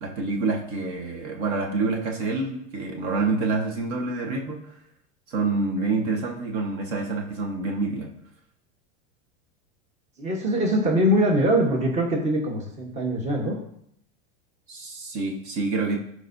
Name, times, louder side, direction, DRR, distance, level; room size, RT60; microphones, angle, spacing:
voice 1, 0.0-4.7 5.3-8.1 14.7-16.0, right 3 dB, 50° right, 2 dB, 1.4 m, -27 dB
voice 2, 10.2-13.6, equal, 20° right, 1 dB, 1.3 m, -23 dB
13.0 x 4.9 x 2.7 m, 0.72 s
supercardioid pair, 145°, 35 cm